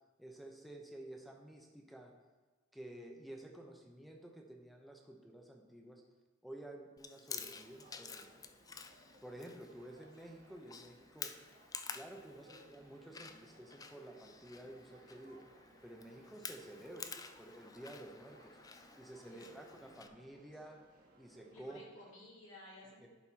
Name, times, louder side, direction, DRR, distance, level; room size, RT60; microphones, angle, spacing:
voice 1, 0.2-2.1 2.7-6.0 6.4-8.4 9.2-11.3 11.9-15.4 15.8-18.6 19.0-20.8 21.2-21.8 23.0-23.1, right 1 dB, ahead, 2 dB, 0.9 m, -52 dB
Chewing mastication, 7.0-20.1, left 6 dB, 20° left, 0.3 m, -51 dB
sound 1, 7.3-21.7, right 1 dB, 50° right, 1.3 m, -64 dB
voice 2, 16.1-16.4 19.3-20.4 21.5-23.1, left 1 dB, 85° left, -5 dB, 3.0 m, -57 dB
11.0 x 4.8 x 4.6 m, 1.3 s
head